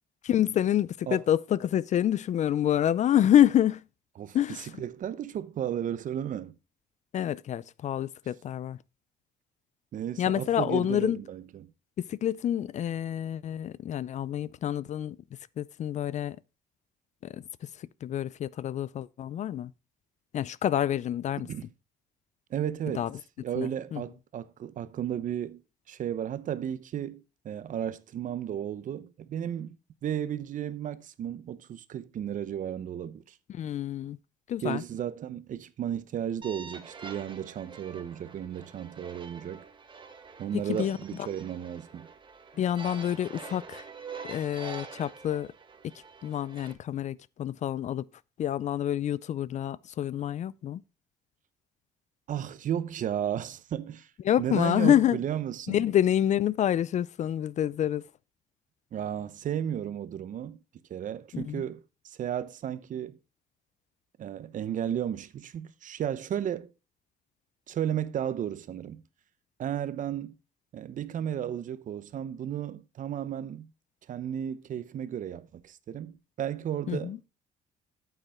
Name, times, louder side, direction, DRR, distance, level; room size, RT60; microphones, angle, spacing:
voice 1, 0.2-3.8 4.3-4.7 7.1-8.8 10.2-11.2 12.0-15.2 15.6-16.4 17.2-17.4 18.0-19.7 20.3-21.5 22.9-23.1 23.6-24.0 33.5-34.2 34.5-34.8 40.8-41.0 42.6-43.8 44.2-45.5 45.8-45.9 46.2-48.0 48.4-50.8 54.2-55.2 55.7-58.0 61.3-61.6 76.9-77.2, left 11 dB, 45° left, 0.4 m, -27 dB
voice 2, 4.2-6.5 9.9-11.7 21.4-21.7 22.5-23.1 23.4-25.6 25.9-29.8 30.0-33.4 34.6-39.6 40.4-42.1 52.3-54.1 54.4-55.9 58.9-60.6 60.9-63.2 64.2-66.7 67.7-69.0 69.6-70.4 70.7-73.7 74.1-77.2, right 10 dB, 50° right, 0.8 m, -34 dB
sound 1, 36.4-46.7, right 5 dB, 30° right, 1.4 m, -46 dB
8.8 x 8.1 x 3.6 m
cardioid pair, 110°, 17 cm